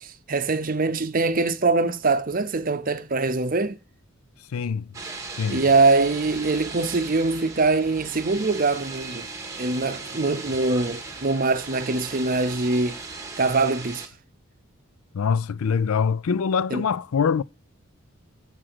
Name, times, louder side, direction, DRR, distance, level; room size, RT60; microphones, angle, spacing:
voice 1, 0.0-3.8 5.5-9.3 9.6-13.0 13.4-14.0 16.7-16.8, right 3 dB, 40° right, 0.7 m, -23 dB
voice 2, 4.5-4.9 5.4-5.7 15.1-17.4, left 6 dB, 80° left, 0.4 m, -24 dB
sound 1, 4.9-14.1, right 3 dB, 15° right, 1.3 m, -37 dB
7.4 x 4.9 x 5.8 m
head